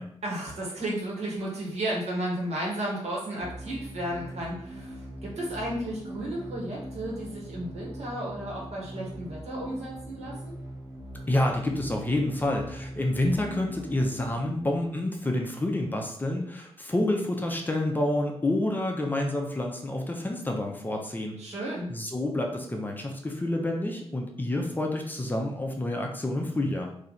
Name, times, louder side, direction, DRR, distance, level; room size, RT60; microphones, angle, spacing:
voice 1, 0.2-10.5 21.4-21.9, right 1 dB, 75° right, -4 dB, 1.5 m, -33 dB
sound 1, 3.4-15.3, right 1 dB, 35° right, 1.2 m, -41 dB
voice 2, 11.3-21.4 21.9-26.9, left 1 dB, 15° left, 1 dB, 0.6 m, -28 dB
3.2 x 2.8 x 4.0 m, 0.67 s
wide cardioid pair, 120°, 11 cm